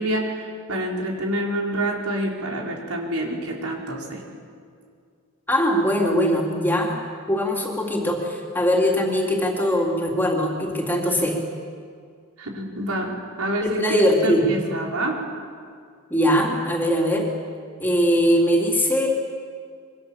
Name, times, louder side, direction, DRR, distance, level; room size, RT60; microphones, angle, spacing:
voice 1, 0.0-4.2 12.4-13.1 13.4-15.2, right 1 dB, 85° right, -1 dB, 5.0 m, -27 dB
voice 2, 5.5-7.0 7.3-11.4 13.6-14.5 16.1-17.3 17.8-19.1, equal, 10° left, -1 dB, 3.3 m, -21 dB
27.0 x 24.5 x 7.4 m, 2.1 s
head